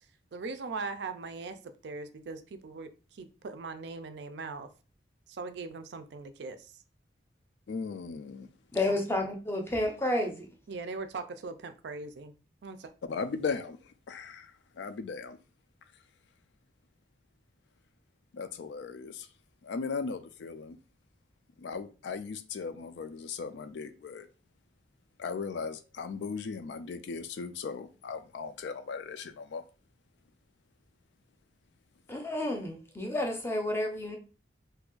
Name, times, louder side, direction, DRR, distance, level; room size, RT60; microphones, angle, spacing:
voice 1, 0.3-4.7 5.3-6.8 8.8-9.0 10.7-12.3 12.6-12.9, right 4 dB, 65° right, 0.4 m, -40 dB
voice 2, 7.7-8.5 8.8-8.9 13.1-15.4 18.3-19.3 19.6-20.8 21.6-24.3 25.2-29.6, left 5 dB, 70° left, 0.3 m, -37 dB
voice 3, 8.7-10.5 32.1-34.2, left 1 dB, 15° left, 0.6 m, -30 dB
2.7 x 2.4 x 3.7 m
head